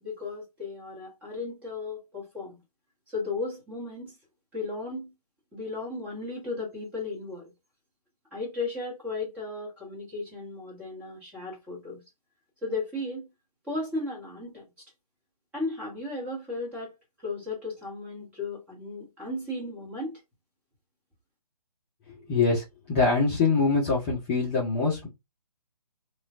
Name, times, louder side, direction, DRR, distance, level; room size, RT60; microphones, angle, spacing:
voice 1, 0.0-2.6 3.1-4.1 4.5-5.1 5.5-7.5 8.3-12.0 12.6-13.3 13.7-14.7 15.5-16.9 17.2-20.2, left 3 dB, 5° right, 1.2 m, -35 dB
voice 2, 22.3-25.1, left 4 dB, 20° left, 0.7 m, -24 dB
3.0 x 2.3 x 2.5 m
figure-of-eight pair, 150°, 20 cm